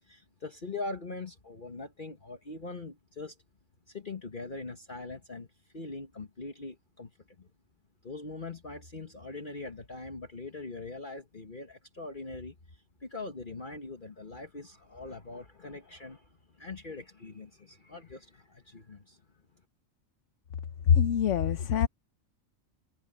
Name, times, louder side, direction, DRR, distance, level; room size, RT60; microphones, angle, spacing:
voice 1, 0.0-3.4 3.9-5.5 5.7-7.5 8.0-19.2, left 3 dB, 40° left, 1.6 m, -42 dB
voice 2, 20.9-21.9, left 8 dB, 65° left, 1.1 m, -24 dB
omnidirectional pair, 1.4 m